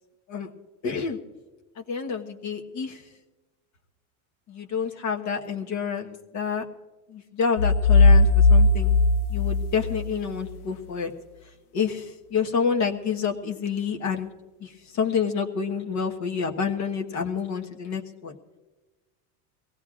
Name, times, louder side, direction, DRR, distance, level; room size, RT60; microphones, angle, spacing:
voice 1, 0.8-1.2 1.8-3.0 4.5-6.6 7.1-9.0 9.3-11.1 11.7-14.3 14.6-18.4, left 6 dB, 45° left, 3 dB, 1.3 m, -28 dB
sound 1, 7.6-10.4, left 3 dB, 65° left, 0.9 m, -18 dB
23.5 x 17.0 x 2.5 m, 1.2 s
cardioid pair, 145°, 40 cm